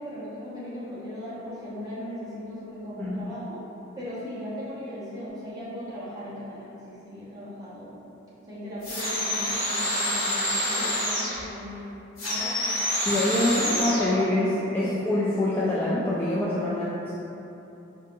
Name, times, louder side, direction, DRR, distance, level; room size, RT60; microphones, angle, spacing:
voice 1, 0.0-3.6 4.0-8.0 8.5-11.9 12.2-12.8 13.4-15.0 16.6-17.2, equal, 20° right, -9 dB, 0.8 m, -38 dB
sound 1, 8.8-11.4 12.2-14.1, left 1 dB, 75° left, 1.2 m, -27 dB
voice 2, 13.0-17.2, left 1 dB, 10° left, -9 dB, 0.3 m, -25 dB
4.6 x 2.7 x 2.5 m, 2.9 s
head